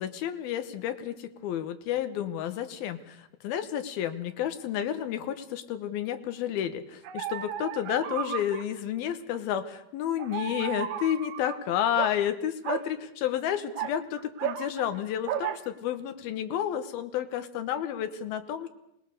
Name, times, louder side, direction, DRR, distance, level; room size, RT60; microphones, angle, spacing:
voice 1, 0.0-18.7, left 10 dB, 80° left, 9 dB, 3.0 m, -31 dB
sound 1, 7.0-8.6 10.2-11.6 12.0-12.2 12.6-12.9 13.5-15.0 15.3-15.6, right 10 dB, 70° right, 2.5 m, -34 dB
26.0 x 19.0 x 6.6 m, 0.84 s
omnidirectional pair, 4.4 m